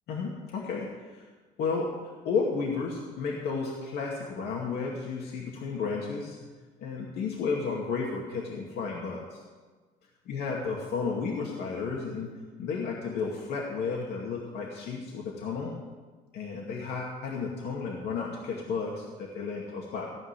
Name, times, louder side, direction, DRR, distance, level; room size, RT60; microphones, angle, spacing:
voice 1, 0.1-1.2 1.6-6.4 6.8-9.4 10.3-12.3 12.6-15.7 16.3-20.1, left 5 dB, 75° left, -2 dB, 2.3 m, -32 dB
16.0 x 5.6 x 9.8 m, 1.3 s
cardioid pair, 110°, 17 cm